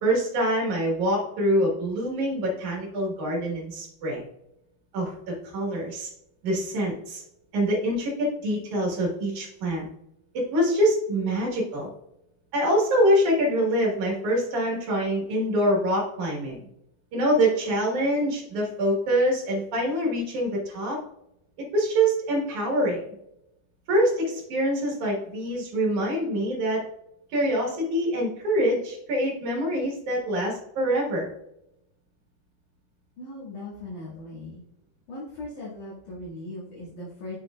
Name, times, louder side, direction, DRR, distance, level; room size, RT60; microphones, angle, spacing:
voice 1, 0.0-4.2 4.9-5.1 5.4-6.1 6.4-7.2 7.5-9.9 10.5-11.9 12.5-16.6 17.1-21.0 21.7-23.0 23.9-26.8 27.3-31.3, right 1 dB, 55° right, -2 dB, 2.8 m, -25 dB
voice 2, 33.2-34.6 35.1-37.4, left 2 dB, 60° left, -9 dB, 3.4 m, -39 dB
7.3 x 6.6 x 2.4 m, 0.81 s
omnidirectional pair, 4.4 m